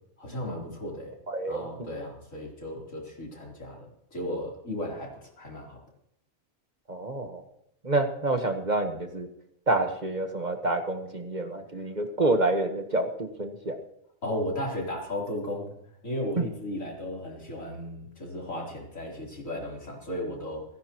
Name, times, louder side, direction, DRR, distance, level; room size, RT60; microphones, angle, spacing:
voice 1, 0.2-1.1 1.5-5.8 14.2-15.7 16.0-20.7, left 1 dB, 75° left, -2 dB, 4.2 m, -35 dB
voice 2, 1.3-1.7 6.9-7.4 7.8-9.3 9.7-13.8 16.4-16.5, right 2 dB, 35° right, 5 dB, 1.3 m, -28 dB
28.0 x 10.5 x 3.0 m, 0.76 s
omnidirectional pair, 1.4 m